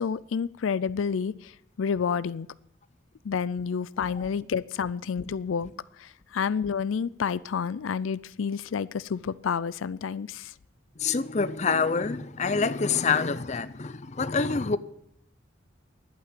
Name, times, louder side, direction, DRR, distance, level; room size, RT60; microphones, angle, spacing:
voice 1, 0.0-1.5 1.8-2.5 3.2-5.7 6.0-10.5, left 6 dB, 90° left, 18 dB, 0.4 m, -29 dB
voice 2, 11.0-14.8, left 5 dB, 35° left, 14 dB, 0.6 m, -27 dB
11.5 x 8.8 x 9.2 m, 0.75 s
head